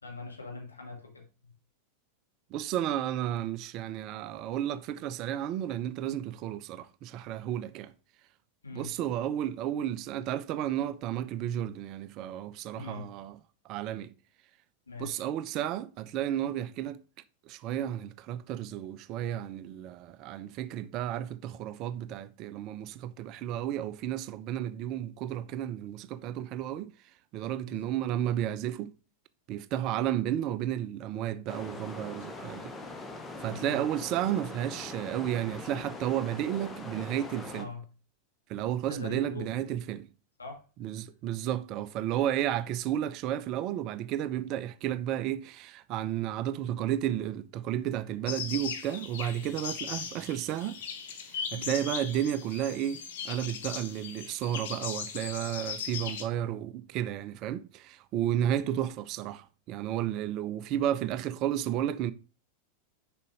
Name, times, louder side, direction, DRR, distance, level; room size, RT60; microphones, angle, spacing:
voice 1, 0.0-1.5 8.6-9.0 12.8-13.1 14.9-15.2 27.6-28.0 33.4-33.8 37.5-37.8 38.8-39.6 40.4-41.0 51.5-51.7 58.6-58.8, left 4 dB, 75° left, 2.1 m, -43 dB
voice 2, 2.5-7.9 8.7-13.4 13.6-14.1 15.0-17.0 17.5-26.9 27.3-28.9 29.5-32.7 33.4-37.7 38.5-40.1 40.8-50.8 51.3-53.0 53.2-62.1, right 11 dB, 40° right, 0.5 m, -32 dB
sound 1, 31.5-37.6, left 2 dB, 15° left, 1.1 m, -42 dB
sound 2, 48.3-56.2, left 7 dB, 55° left, 1.2 m, -38 dB
6.7 x 5.2 x 4.9 m
figure-of-eight pair, 90°, 0 cm